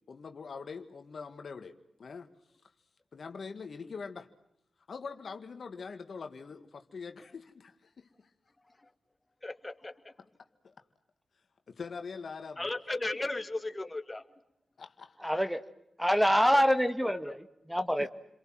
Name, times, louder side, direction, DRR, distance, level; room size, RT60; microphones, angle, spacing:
voice 1, 0.1-2.3 3.1-4.3 4.9-8.1 10.6-10.7 11.7-12.7 14.8-15.3 18.0-18.1, left 5 dB, 65° left, 7 dB, 1.9 m, -43 dB
voice 2, 9.4-10.1 12.6-14.2 17.3-17.4, left 2 dB, 25° left, 9 dB, 2.2 m, -36 dB
voice 3, 15.2-15.6 16.0-18.1, equal, ahead, 9 dB, 1.7 m, -26 dB
30.0 x 23.0 x 7.7 m, 0.78 s
supercardioid pair, 40°, 0 cm